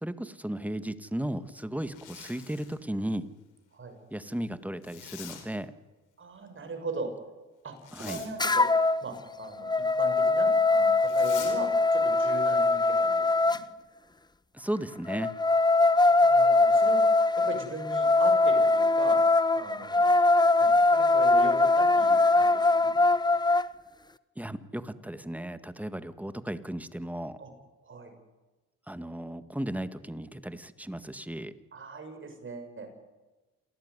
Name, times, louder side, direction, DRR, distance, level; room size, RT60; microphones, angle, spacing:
voice 1, 0.0-3.3 4.1-5.7 7.9-8.2 14.5-15.3 24.4-27.4 28.9-31.5, right 1 dB, 5° right, 11 dB, 1.7 m, -35 dB
Zipper (clothing), 1.8-2.8 4.8-5.5 7.8-8.3 11.0-11.6, left 9 dB, 85° left, 5.0 m, -45 dB
voice 2, 6.2-7.1 7.6-8.6 9.0-13.6 15.9-17.0 17.3-19.2 19.5-20.1 20.6-23.0 27.4-27.5 27.8-28.1 31.7-32.9, right 3 dB, 40° right, 6 dB, 6.7 m, -39 dB
sound 1, 8.4-9.0 9.4-13.6 15.1-23.7, left 3 dB, 15° left, 1.0 m, -22 dB
27.5 x 18.0 x 9.7 m, 1.2 s
cardioid pair, 90°, 30 cm